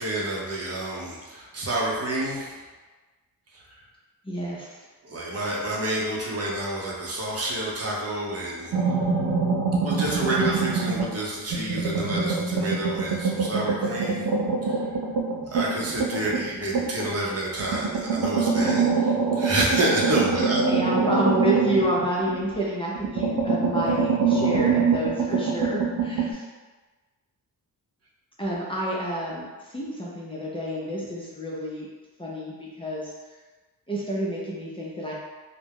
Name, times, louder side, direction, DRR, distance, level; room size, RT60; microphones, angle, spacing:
voice 1, 0.0-2.6 3.5-3.8 5.0-8.8 9.8-14.3 14.6-14.8 15.5-20.6, right 1 dB, 45° right, -4 dB, 0.7 m, -29 dB
voice 2, 4.2-4.8 20.6-26.5 28.4-31.9 32.2-33.1 33.9-35.1, right 1 dB, 15° left, -6 dB, 0.5 m, -29 dB
sound 1, 8.7-11.2 11.5-17.1 17.6-22.6 23.0-26.3, right 4 dB, 85° right, 0.6 m, -25 dB
2.3 x 2.0 x 3.3 m, 1.3 s
cardioid pair, 90°, 36 cm